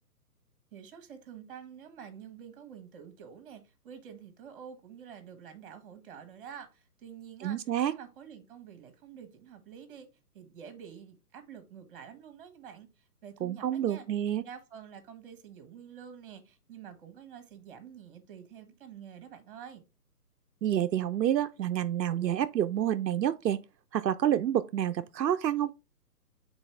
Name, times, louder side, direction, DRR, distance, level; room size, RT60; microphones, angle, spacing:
voice 1, 0.7-10.1 10.3-14.0 14.3-19.8, right 8 dB, 35° right, 1.5 m, -48 dB
voice 2, 7.4-7.9 13.4-14.4 20.6-23.6 23.9-25.7, right 11 dB, 85° right, 0.6 m, -28 dB
7.0 x 4.1 x 3.4 m
hypercardioid pair, 145°, 49 cm